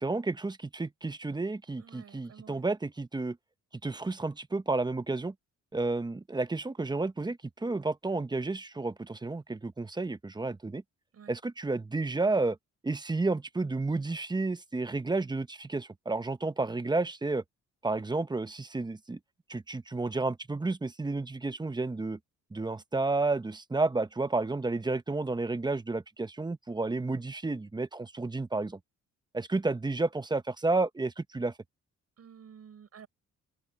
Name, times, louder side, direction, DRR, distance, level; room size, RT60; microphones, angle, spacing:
voice 1, 0.0-3.4 3.8-5.3 5.7-10.8 11.3-12.6 12.8-17.4 17.8-19.2 19.5-22.2 22.5-28.8 29.3-31.5, right 3 dB, 15° right, 0.9 m, -31 dB
voice 2, 1.8-2.6 11.1-11.4 32.2-33.1, right 7 dB, 55° right, 6.7 m, -52 dB
open air
cardioid pair, 90°, 30 cm